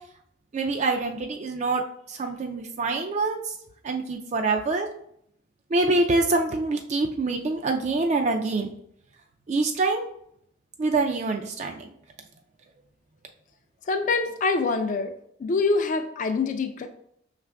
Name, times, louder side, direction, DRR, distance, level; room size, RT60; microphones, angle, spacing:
voice 1, 0.5-1.8 2.1-3.5 3.8-4.9 5.7-8.7 9.5-10.1 10.8-11.9, right 3 dB, 35° right, 3 dB, 0.3 m, -25 dB
voice 2, 13.9-15.1 15.4-16.9, left 4 dB, 40° left, 6 dB, 0.4 m, -25 dB
5.3 x 2.4 x 3.3 m, 0.70 s
head